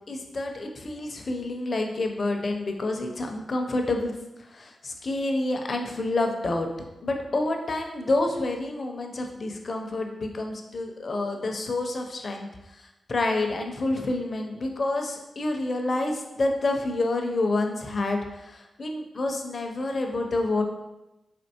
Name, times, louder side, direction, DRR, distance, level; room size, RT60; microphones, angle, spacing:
voice 1, 0.1-4.1 4.4-6.7 7.0-20.6, left 2 dB, 45° left, 3 dB, 0.5 m, -28 dB
4.2 x 2.9 x 2.8 m, 0.97 s
wide cardioid pair, 100°, 0 cm